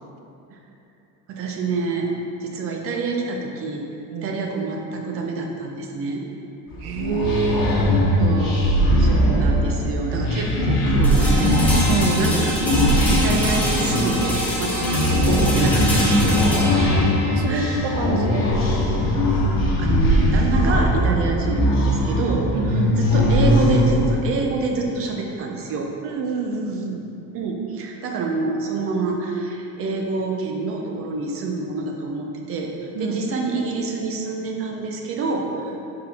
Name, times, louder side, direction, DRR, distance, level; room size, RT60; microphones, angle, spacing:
voice 1, 1.3-2.1 2.4-3.9 4.2-6.2 8.2-11.8 12.2-16.4 17.0-17.1 17.5-17.9 19.8-22.5 23.1-25.9 27.3-32.7 33.0-35.8, right 3 dB, 35° right, 1 dB, 0.6 m, -27 dB
sound 1, 6.7-24.1, equal, 60° left, 1.3 m, -20 dB
voice 2, 6.8-7.8 9.0-9.4 11.9-12.3 17.3-18.5 22.5-23.0 26.0-27.1 32.9-33.2 35.7-35.8, right 4 dB, 80° right, 4 dB, 0.7 m, -27 dB
sound 2, 11.0-20.9, equal, 5° left, 0.6 m, -27 dB
6.0 x 4.9 x 3.5 m, 2.8 s
cardioid pair, 175°, 37 cm